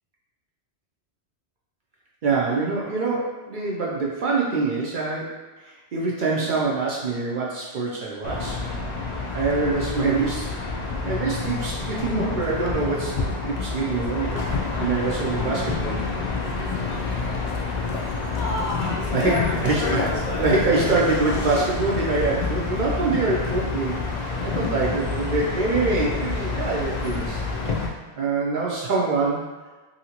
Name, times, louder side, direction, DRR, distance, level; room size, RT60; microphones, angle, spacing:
voice 1, 2.2-5.4 5.6-8.6 9.3-10.5 11.0-14.5 14.8-16.0 19.1-20.1 20.4-24.0 24.4-27.4 28.2-29.5, right 3 dB, 55° right, -4 dB, 0.6 m, -25 dB
sound 1, 8.2-27.9, left 4 dB, 65° left, 0.4 m, -27 dB
2.8 x 2.7 x 2.8 m, 1.2 s
omnidirectional pair, 1.2 m